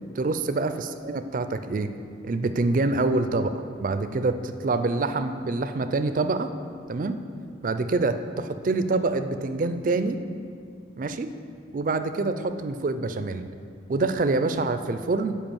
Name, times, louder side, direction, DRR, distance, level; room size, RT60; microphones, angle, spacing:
voice 1, 0.2-1.9 2.2-6.5 6.9-7.2 7.6-10.2 11.0-11.3 11.7-13.5 13.9-15.4, right 3 dB, 45° right, 10 dB, 0.4 m, -26 dB
7.8 x 4.9 x 7.0 m, 2.3 s
head